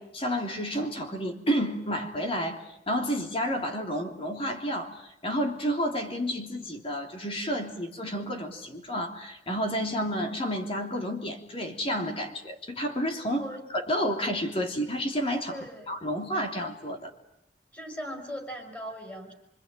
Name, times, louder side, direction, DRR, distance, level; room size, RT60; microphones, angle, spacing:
voice 1, 0.0-13.5 13.7-15.6 15.9-17.1, equal, 30° left, 4 dB, 3.3 m, -30 dB
voice 2, 13.3-13.7 15.5-16.0 17.7-19.3, equal, 10° left, 4 dB, 5.6 m, -39 dB
26.0 x 25.0 x 9.2 m, 0.79 s
head